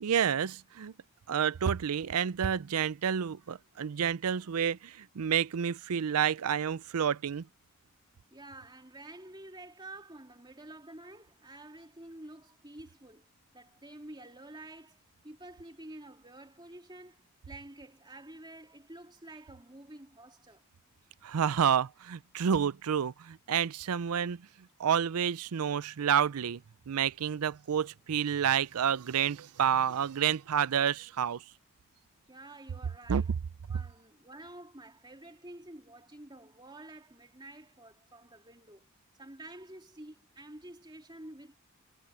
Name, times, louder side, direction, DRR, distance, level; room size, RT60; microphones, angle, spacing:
voice 1, 0.0-0.9 1.3-7.5 21.2-24.5 24.8-31.4 33.1-33.2 33.7-33.8, right 8 dB, 85° right, 0.5 m, -29 dB
voice 2, 8.3-20.6 32.3-33.3 33.7-38.9 39.2-41.5, right 1 dB, 20° right, 2.6 m, -49 dB
head